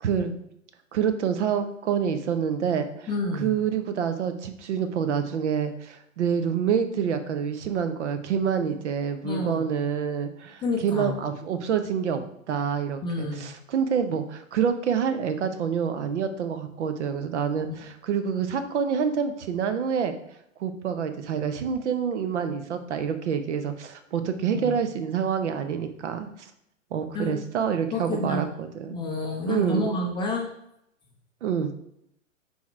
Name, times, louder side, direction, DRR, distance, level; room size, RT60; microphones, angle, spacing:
voice 1, 0.0-0.4 0.9-3.1 3.4-12.2 12.5-20.1 20.6-26.5 26.9-29.0 29.5-30.0 31.4-31.7, right 7 dB, 60° right, 9 dB, 0.9 m, -27 dB
voice 2, 3.1-3.5 9.2-9.6 10.6-11.2 13.0-13.5 17.6-17.8 24.5-24.8 27.1-27.4 27.9-28.5 28.9-30.5, left 2 dB, 10° left, 1 dB, 0.5 m, -29 dB
5.6 x 4.4 x 4.4 m, 0.78 s
figure-of-eight pair, 110°, 40 cm